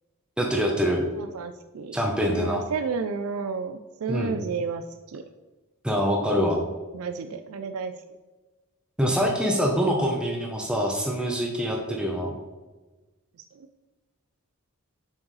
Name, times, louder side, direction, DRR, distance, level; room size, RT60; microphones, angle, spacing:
voice 1, 0.4-1.1 1.9-2.6 4.1-4.4 5.8-6.6 9.0-12.4, equal, 5° right, 0 dB, 0.7 m, -25 dB
voice 2, 1.2-5.2 6.9-7.9 13.5-13.7, right 5 dB, 75° right, 8 dB, 0.4 m, -32 dB
7.4 x 6.1 x 3.2 m, 1.2 s
head